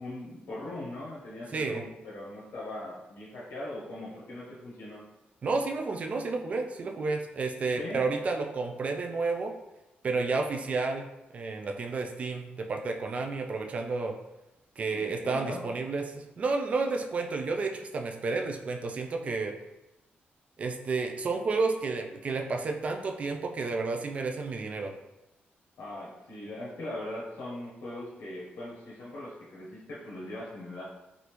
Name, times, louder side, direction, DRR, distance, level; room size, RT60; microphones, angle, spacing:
voice 1, 0.0-5.0 7.8-8.0 14.9-15.6 25.8-30.8, left 1 dB, 80° left, -7 dB, 0.8 m, -40 dB
voice 2, 1.5-1.8 5.4-9.5 10.0-11.1 11.3-14.1 14.8-19.6 20.6-24.9, right 3 dB, 35° right, 4 dB, 0.3 m, -31 dB
3.3 x 2.5 x 2.9 m, 0.97 s
wide cardioid pair, 160°, 4 cm